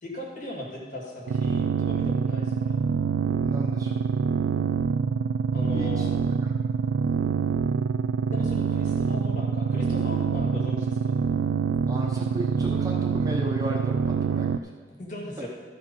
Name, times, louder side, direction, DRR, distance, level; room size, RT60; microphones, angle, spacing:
voice 1, 0.0-2.8 5.5-6.1 8.3-11.2 15.0-15.5, left 1 dB, 40° left, -2 dB, 2.1 m, -37 dB
sound 1, 1.3-14.6, right 6 dB, 85° right, 0.3 m, -25 dB
voice 2, 3.4-4.0 5.7-6.1 6.4-6.6 7.0-7.2 11.9-14.8 15.4-15.5, right 1 dB, 20° right, -1 dB, 0.9 m, -35 dB
13.5 x 5.2 x 5.4 m, 1.4 s
head